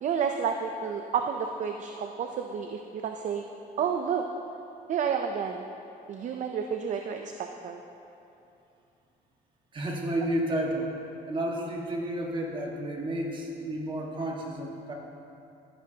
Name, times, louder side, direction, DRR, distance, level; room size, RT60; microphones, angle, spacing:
voice 1, 0.0-3.4 3.8-4.2 4.9-5.6 6.1-7.8, right 7 dB, 45° right, 5 dB, 0.5 m, -30 dB
voice 2, 9.7-10.9 11.3-14.9, right 1 dB, 30° right, -1 dB, 1.5 m, -31 dB
14.5 x 8.8 x 2.8 m, 2.8 s
cardioid pair, 110°, 17 cm